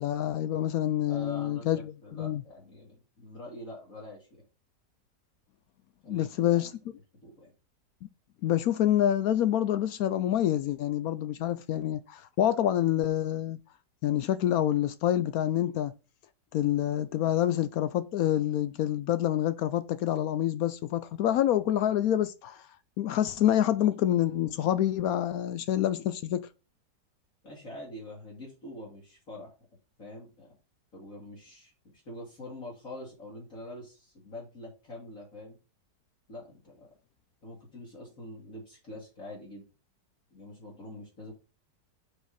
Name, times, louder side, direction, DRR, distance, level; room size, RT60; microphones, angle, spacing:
voice 1, 0.0-1.9 2.2-2.4 6.1-6.7 8.4-13.6 14.0-15.9 16.5-22.6 23.0-26.5, left 11 dB, 70° left, 0.8 m, -27 dB
voice 2, 1.1-4.4 6.0-6.6 7.2-7.5 27.4-29.5 30.0-30.6 30.9-35.6 36.3-36.9 37.4-39.6 40.3-41.3, left 1 dB, 45° left, 2.7 m, -45 dB
5.3 x 5.0 x 5.5 m
omnidirectional pair, 1.9 m